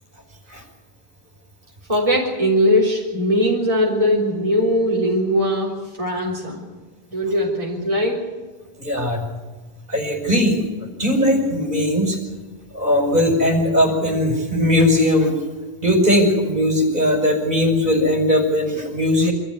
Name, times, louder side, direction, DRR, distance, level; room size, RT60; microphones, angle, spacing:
voice 1, 1.9-6.7 7.1-8.2, equal, 35° right, -4 dB, 3.8 m, -20 dB
voice 2, 8.8-9.3 9.9-10.6 11.0-12.2 12.7-15.4 15.8-19.3, left 1 dB, 50° right, 1 dB, 5.7 m, -19 dB
25.5 x 14.0 x 9.7 m, 1.3 s
omnidirectional pair, 1.1 m